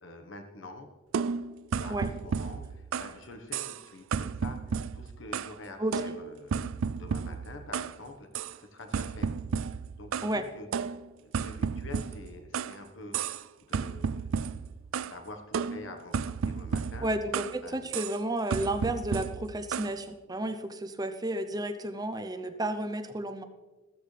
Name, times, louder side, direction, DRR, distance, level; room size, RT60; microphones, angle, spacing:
voice 1, 0.0-0.9 1.7-6.6 6.9-9.3 10.0-10.7 11.2-13.2 13.7-14.4 15.0-17.1 17.6-17.9, left 2 dB, 65° left, 6 dB, 1.3 m, -46 dB
sound 1, 1.1-3.2 3.5-3.8 4.1-5.6 5.9-8.0 8.3-8.6 8.9-10.4 10.7-12.8 13.1-13.5 13.7-15.2 15.5-17.6 17.9-18.2 18.5-19.9, right 6 dB, 80° right, 0.4 m, -33 dB
voice 2, 17.0-23.4, right 1 dB, 20° right, 9 dB, 0.6 m, -32 dB
15.0 x 14.0 x 3.3 m, 1.3 s
head